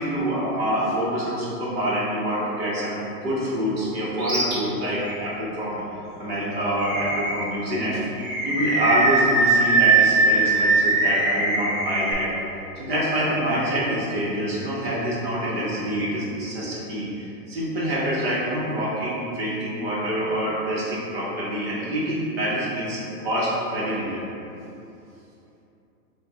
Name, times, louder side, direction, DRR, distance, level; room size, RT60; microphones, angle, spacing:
voice 1, 0.0-5.8 6.2-12.3 12.7-24.2, equal, 40° right, -7 dB, 1.2 m, -26 dB
Animal, 4.2-4.5 5.0-5.2 6.8-7.5 8.2-12.1, right 3 dB, 20° right, 0.7 m, -21 dB
7.1 x 2.6 x 2.4 m, 2.8 s
hypercardioid pair, 160°, 48 cm